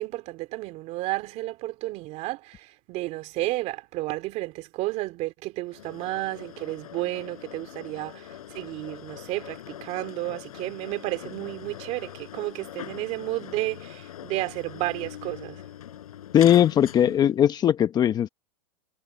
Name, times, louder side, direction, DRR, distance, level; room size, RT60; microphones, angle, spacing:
voice 1, 0.0-15.6, right 18 dB, 40° right, 3.0 m, -32 dB
sound 1, 5.7-17.4, left 11 dB, 90° left, 6.0 m, -42 dB
voice 2, 16.3-18.3, left 10 dB, 25° left, 1.0 m, -19 dB
supercardioid pair, 145°, 18 cm